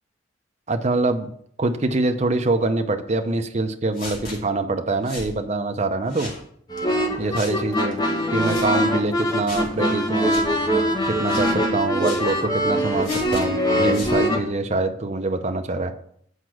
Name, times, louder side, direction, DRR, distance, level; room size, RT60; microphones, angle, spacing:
voice 1, 0.7-1.3 1.6-6.3 7.2-8.0 8.3-10.4 11.1-15.9, right 2 dB, 35° right, 6 dB, 0.7 m, -24 dB
sound 1, 3.9-4.4 5.1-5.3 6.1-6.4 7.3-7.6 8.4-8.7 9.5-9.7 10.3-10.5 11.2-11.6 12.0-12.3 13.0-13.4 13.9-14.2, left 2 dB, 50° left, 2.3 m, -36 dB
sound 2, 6.7-14.4, equal, 20° left, 1.3 m, -23 dB
8.1 x 4.6 x 6.3 m, 0.65 s
head